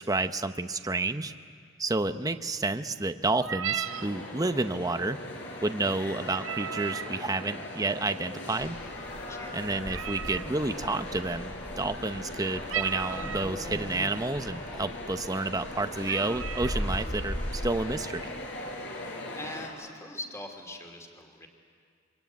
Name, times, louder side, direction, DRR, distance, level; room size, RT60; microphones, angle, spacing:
voice 1, 0.0-1.3 1.8-5.2 5.6-8.8 9.5-18.3, right 2 dB, 20° right, 9 dB, 0.7 m, -30 dB
sound 1, 3.3-4.1 6.3-7.1 9.9-10.5 12.7-13.5 14.3-14.4 14.8-15.1 15.6-15.7 16.1-16.8, right 9 dB, 80° right, 0.7 m, -35 dB
sound 2, 3.8-19.7, left 1 dB, 65° left, 5.0 m, -40 dB
sound 3, 8.6-17.7, equal, 35° left, 6.8 m, -39 dB
voice 2, 9.3-9.6 19.3-21.5, left 1 dB, 15° left, 4 dB, 2.9 m, -42 dB
26.0 x 24.5 x 9.3 m, 2.1 s
head